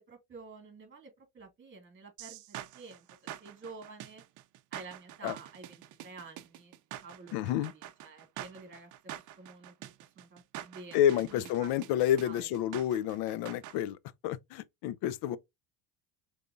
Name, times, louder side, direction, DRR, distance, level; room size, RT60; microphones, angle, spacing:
voice 1, 0.0-4.2 4.7-6.7 7.0-7.4 7.7-9.7 10.2-11.0 11.3-11.7 12.2-12.4, right 4 dB, 25° right, 2.5 m, -50 dB
sound 1, 2.2-13.8, right 13 dB, 45° right, 0.6 m, -46 dB
voice 2, 7.3-7.7 10.9-14.0 14.2-15.4, left 11 dB, 60° left, 0.6 m, -29 dB
5.1 x 3.4 x 2.6 m
supercardioid pair, 115°, 43 cm